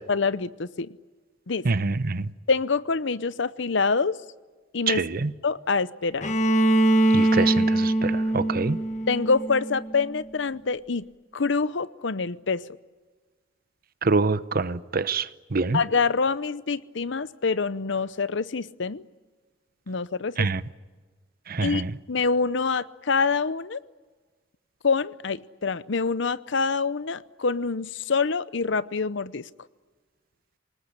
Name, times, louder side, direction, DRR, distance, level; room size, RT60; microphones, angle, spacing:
voice 1, 0.1-0.9 1.5-1.6 2.5-4.2 4.7-5.0 5.4-6.2 9.1-11.1 11.3-12.6 15.7-19.0 19.9-20.5 21.6-23.8 24.8-29.4, left 4 dB, 65° left, 0.8 m, -26 dB
voice 2, 1.6-2.3 4.9-5.3 7.1-8.8 14.0-15.2 15.5-15.8 20.4-20.6 21.5-21.9, right 4 dB, 50° right, 0.8 m, -25 dB
Bowed string instrument, 6.2-10.1, right 1 dB, 40° left, 1.3 m, -22 dB
27.0 x 19.5 x 10.0 m
head